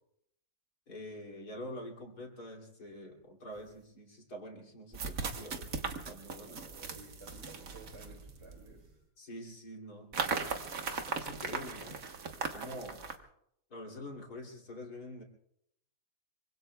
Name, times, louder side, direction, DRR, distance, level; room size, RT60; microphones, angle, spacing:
voice 1, 0.9-5.7 6.1-6.6 9.2-10.1 10.5-10.6 11.0-12.0 12.5-13.0 13.7-15.2, left 1 dB, 75° left, 1 dB, 3.2 m, -46 dB
sound 1, 3.6-3.7 4.9-8.8 10.1-13.2, right 5 dB, 60° right, 1.7 m, -38 dB
voice 2, 6.4-9.0, right 2 dB, 20° right, 0 dB, 2.4 m, -54 dB
25.0 x 24.5 x 2.3 m, 0.75 s
omnidirectional pair, 1.7 m